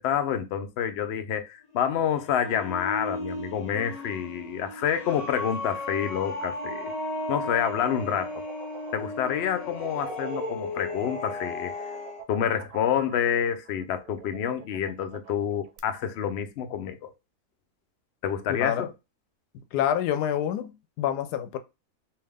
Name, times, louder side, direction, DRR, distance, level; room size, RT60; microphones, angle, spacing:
voice 1, 0.0-6.9 7.3-8.4 8.9-11.7 12.3-17.1 18.2-18.9, left 9 dB, 70° left, 0.6 m, -28 dB
sound 1, 1.7-12.2, left 1 dB, 30° left, 0.8 m, -35 dB
sound 2, 7.3-15.8, right 9 dB, 90° right, 1.1 m, -47 dB
voice 2, 18.6-18.9 19.7-21.6, left 10 dB, 85° left, 1.1 m, -27 dB
3.5 x 2.7 x 3.4 m
omnidirectional pair, 1.7 m